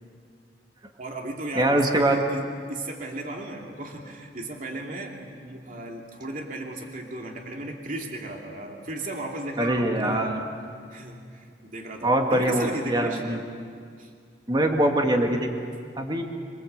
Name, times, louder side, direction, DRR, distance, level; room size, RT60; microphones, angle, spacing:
voice 1, 1.0-10.4 10.9-13.2 14.0-14.1, right 1 dB, 50° right, 0 dB, 2.8 m, -35 dB
voice 2, 1.6-2.2 9.6-10.4 12.0-13.4 14.5-15.5 16.0-16.2, right 1 dB, 25° right, 3 dB, 1.9 m, -23 dB
27.0 x 23.0 x 8.1 m, 2.2 s
head